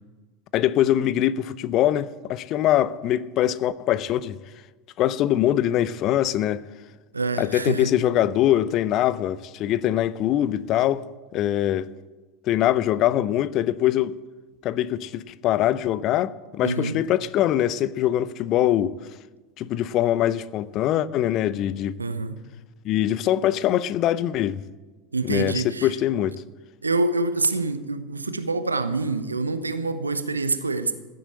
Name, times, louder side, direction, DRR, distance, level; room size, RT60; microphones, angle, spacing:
voice 1, 0.5-4.4 5.0-6.6 7.4-11.0 11.3-11.9 12.5-14.2 14.6-18.9 19.6-22.0 22.8-24.6 25.2-26.4, left 12 dB, 40° left, 0.6 m, -23 dB
voice 2, 7.1-7.9 16.6-17.0 22.0-22.4 25.1-25.9 26.8-30.9, right 3 dB, 80° right, 0.9 m, -26 dB
15.0 x 7.8 x 8.8 m
figure-of-eight pair, 80°, 0 cm